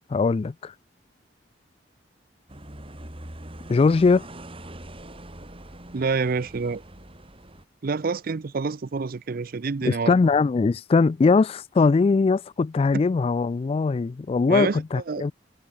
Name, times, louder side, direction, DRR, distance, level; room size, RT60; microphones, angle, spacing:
voice 1, 0.1-0.7 3.7-4.2 9.8-15.3, left 4 dB, 30° left, 0.3 m, -21 dB
sound 1, 2.5-7.6, right 1 dB, 30° right, 4.2 m, -42 dB
voice 2, 5.9-6.8 7.8-10.1 14.5-15.2, right 4 dB, 50° right, 0.5 m, -27 dB
head